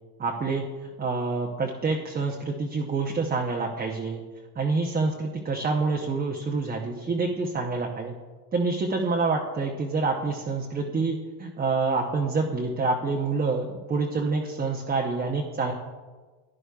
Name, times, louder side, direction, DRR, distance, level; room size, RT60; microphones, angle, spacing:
voice 1, 0.2-0.6 1.0-4.2 4.6-8.1 8.5-15.7, right 3 dB, 20° right, 0 dB, 0.8 m, -27 dB
11.0 x 10.5 x 2.3 m, 1.4 s
supercardioid pair, 115°, 48 cm